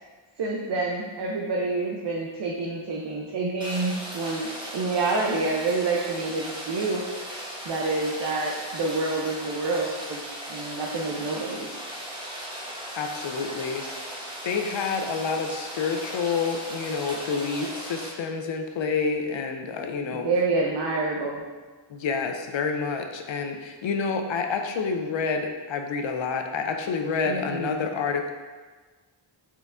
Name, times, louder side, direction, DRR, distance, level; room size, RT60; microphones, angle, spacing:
voice 1, 0.4-7.0 7.6-10.2 10.5-11.7 20.1-21.4 27.3-27.9, right 3 dB, 60° right, -2 dB, 0.6 m, -28 dB
Rain, 3.6-18.1, equal, 10° right, 0.9 m, -37 dB
voice 2, 12.9-13.8 14.4-20.3 21.9-28.3, left 5 dB, 70° left, 4 dB, 0.6 m, -28 dB
4.4 x 3.4 x 2.5 m, 1.4 s
wide cardioid pair, 60°, 47 cm